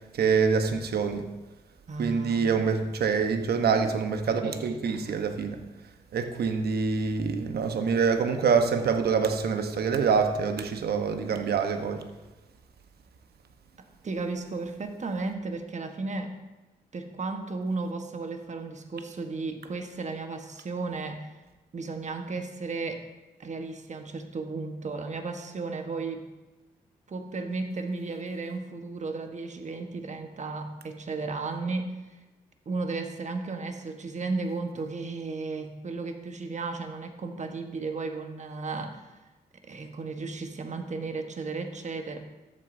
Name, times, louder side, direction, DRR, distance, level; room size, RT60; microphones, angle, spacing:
voice 1, 0.1-1.2 2.0-5.6 6.1-12.0, right 5 dB, 60° right, 6 dB, 1.1 m, -25 dB
voice 2, 1.9-2.5 14.0-16.4 16.9-21.3 21.7-23.0 23.4-26.3 27.1-31.9 32.6-39.2 39.7-42.2, right 3 dB, 40° right, 6 dB, 1.3 m, -34 dB
13.0 x 7.7 x 2.7 m, 1.1 s
supercardioid pair, 50°, 18 cm